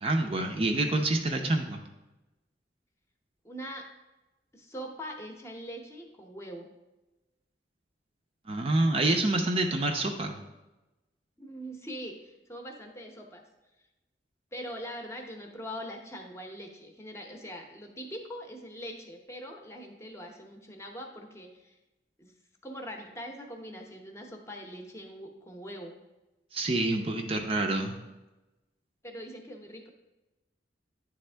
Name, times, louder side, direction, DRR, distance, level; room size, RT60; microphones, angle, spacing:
voice 1, 0.0-1.8 8.5-10.4 26.5-28.0, right 2 dB, 30° right, 3 dB, 0.5 m, -27 dB
voice 2, 3.4-3.8 4.5-6.7 11.4-13.4 14.5-21.8 22.2-22.3 22.6-25.9 29.0-29.9, equal, 15° left, 2 dB, 0.8 m, -42 dB
9.8 x 3.5 x 3.3 m, 1.0 s
head